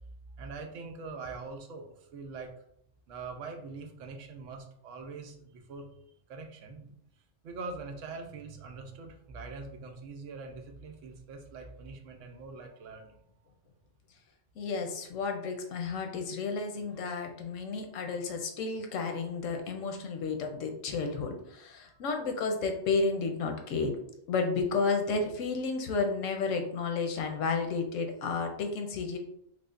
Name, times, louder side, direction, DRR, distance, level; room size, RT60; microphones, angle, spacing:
voice 1, 0.4-2.5 3.1-5.9 6.3-6.9 7.4-13.2 21.0-21.1 21.9-22.0, right 4 dB, 85° right, 4 dB, 1.0 m, -43 dB
voice 2, 14.6-23.9 24.3-29.2, left 4 dB, 85° left, 4 dB, 1.0 m, -32 dB
4.8 x 2.1 x 2.4 m, 0.72 s
omnidirectional pair, 1.3 m